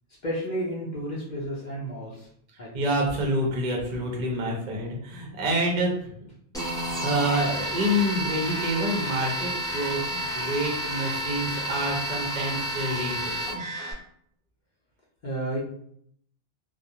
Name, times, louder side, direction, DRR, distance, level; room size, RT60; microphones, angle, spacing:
voice 1, 0.2-2.3 2.6-2.9 15.2-15.6, right 1 dB, 50° left, -5 dB, 0.7 m, -32 dB
voice 2, 2.7-6.1 7.0-13.3, equal, 50° right, -1 dB, 0.6 m, -27 dB
sound 1, 6.5-13.9, right 1 dB, 5° left, 0.6 m, -30 dB
2.3 x 2.1 x 2.7 m, 0.66 s
omnidirectional pair, 1.1 m